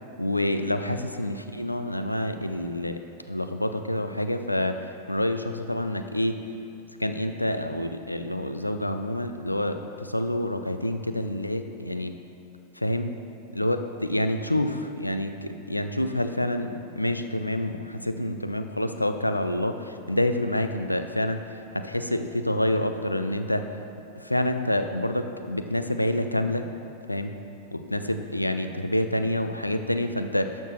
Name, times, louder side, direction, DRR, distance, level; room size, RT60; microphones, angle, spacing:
voice 1, 0.2-3.0 3.3-4.8 5.1-6.4 7.0-12.1 12.8-13.1 13.5-21.4 21.7-23.7 24.2-26.6 27.1-27.3 27.7-30.5, left 1 dB, 85° left, 8 dB, 0.4 m, -27 dB
12.0 x 6.5 x 3.0 m, 2.6 s
figure-of-eight pair, 90°, 0 cm